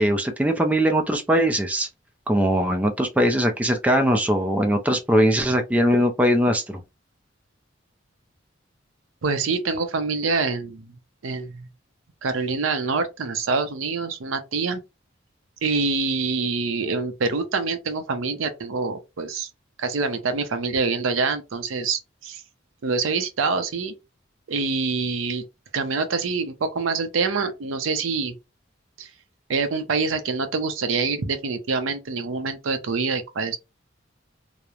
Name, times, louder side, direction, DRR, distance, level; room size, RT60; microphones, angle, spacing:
voice 1, 0.0-1.9 2.3-6.8, equal, 5° right, 0.3 m, -21 dB
voice 2, 9.2-10.9 11.2-11.7 12.2-14.8 15.6-19.5 19.8-22.4 22.8-23.9 24.5-25.4 25.7-28.3 29.0-29.1 29.5-33.6, right 4 dB, 90° right, 0.5 m, -25 dB
2.9 x 2.0 x 2.3 m
head